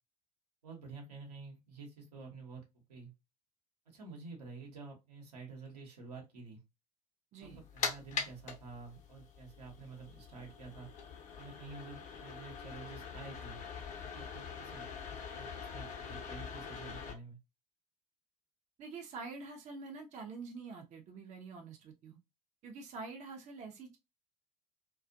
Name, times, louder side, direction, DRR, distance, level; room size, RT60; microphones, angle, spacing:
voice 1, 0.6-2.6 2.9-3.1 3.9-6.6 7.4-10.9 11.4-13.6 14.1-14.9 15.3-17.4, right 4 dB, 75° right, 1.0 m, -49 dB
sound 1, 7.4-17.1, left 6 dB, 40° left, 0.8 m, -43 dB
voice 2, 18.8-22.2 22.6-24.0, right 4 dB, 35° right, 0.6 m, -46 dB
2.4 x 2.3 x 2.5 m
figure-of-eight pair, 70°, 20 cm